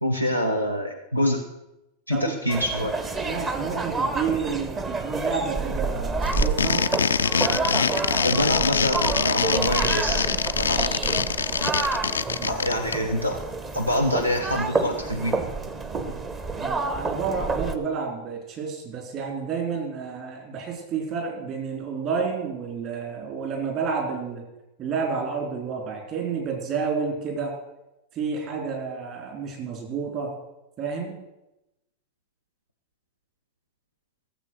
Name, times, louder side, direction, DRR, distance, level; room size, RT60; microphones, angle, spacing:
voice 1, 0.0-1.4 2.1-2.9 8.2-10.9 12.4-13.4 13.7-15.4, equal, 85° right, 6 dB, 0.9 m, -26 dB
sound 1, 2.5-17.8, right 3 dB, 20° right, 1.2 m, -29 dB
voice 2, 3.2-6.8 12.4-12.6 16.6-24.5 24.8-27.5 28.1-30.3 30.8-31.2, right 5 dB, 40° right, 2 dB, 4.2 m, -30 dB
sound 2, 6.2-12.9, left 6 dB, 70° left, 0.4 m, -24 dB
15.5 x 7.5 x 6.5 m, 0.96 s
figure-of-eight pair, 90°, 0 cm